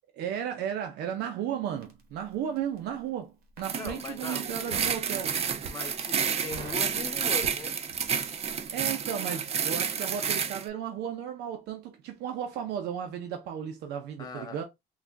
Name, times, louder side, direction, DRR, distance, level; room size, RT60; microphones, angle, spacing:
voice 1, 0.2-5.4 8.7-14.6, right 9 dB, 80° right, 0.6 m, -34 dB
Crackle, 1.8-2.9 3.4-4.0 4.7-5.1 5.5-6.0 6.2-8.2 8.4-8.7, right 4 dB, 65° right, 1.3 m, -43 dB
sound 1, 3.6-10.6, right 7 dB, 40° right, 0.5 m, -30 dB
voice 2, 3.7-4.8 5.7-7.8 8.1-8.5 14.2-14.6, left 4 dB, 25° left, 0.6 m, -40 dB
3.5 x 2.4 x 3.3 m
cardioid pair, 110°, 17 cm